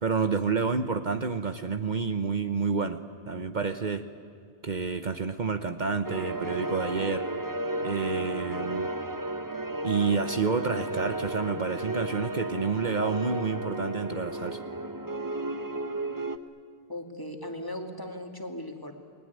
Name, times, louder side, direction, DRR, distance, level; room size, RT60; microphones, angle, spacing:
voice 1, 0.0-4.0 4.6-7.2 7.8-8.9 9.8-14.6, right 5 dB, 50° right, 8 dB, 1.0 m, -29 dB
sound 1, 6.0-16.4, right 2 dB, 20° right, 1.0 m, -33 dB
voice 2, 16.9-18.9, left 1 dB, 20° left, 3 dB, 2.4 m, -37 dB
29.0 x 20.5 x 9.5 m, 2.4 s
omnidirectional pair, 1.0 m